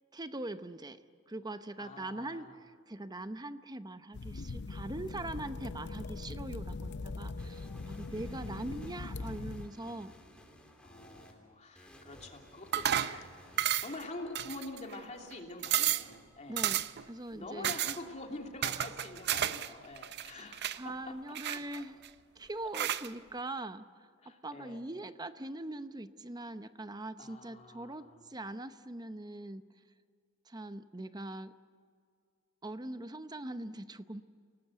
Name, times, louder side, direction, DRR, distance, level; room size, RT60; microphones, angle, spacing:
voice 1, 0.1-1.0 1.3-10.1 16.5-17.7 18.7-18.9 20.3-22.0 22.4-23.9 24.3-29.7 30.5-31.5 32.6-34.2, right 2 dB, 20° right, 11 dB, 0.8 m, -42 dB
voice 2, 1.8-2.6 10.8-16.7 17.3-20.8 21.7-21.8 24.2-24.8 27.2-28.3, left 2 dB, 35° left, 1 dB, 3.1 m, -46 dB
sound 1, 4.1-9.7, left 3 dB, 55° left, 0.6 m, -41 dB
sound 2, 7.4-11.3 11.7-14.3, equal, 5° left, 3.1 m, -56 dB
sound 3, 12.7-13.2 13.6-14.0 14.3-15.0 15.3-15.4 15.6-16.1 16.6-17.0 17.6-18.0 18.6-19.7 20.0-20.8 21.3-22.1 22.7-23.1, right 11 dB, 50° right, 0.6 m, -32 dB
29.0 x 18.5 x 8.1 m, 2.2 s
head